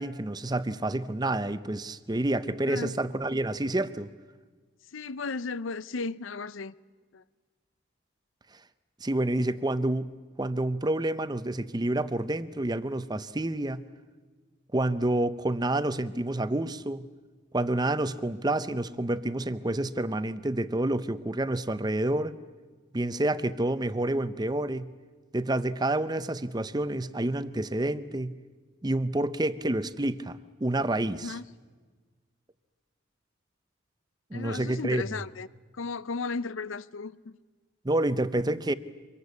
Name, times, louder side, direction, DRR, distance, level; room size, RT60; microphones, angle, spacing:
voice 1, 0.0-4.1 9.0-10.1 10.4-13.8 14.7-17.1 17.5-22.3 22.9-24.9 25.3-28.4 28.8-31.3 34.3-35.0 37.8-38.7, right 1 dB, 20° right, 0.7 m, -28 dB
voice 2, 4.9-6.7 7.1-7.2 31.2-31.4 34.3-35.5 35.7-37.4, left 4 dB, 85° left, 0.7 m, -35 dB
24.5 x 21.5 x 8.3 m
head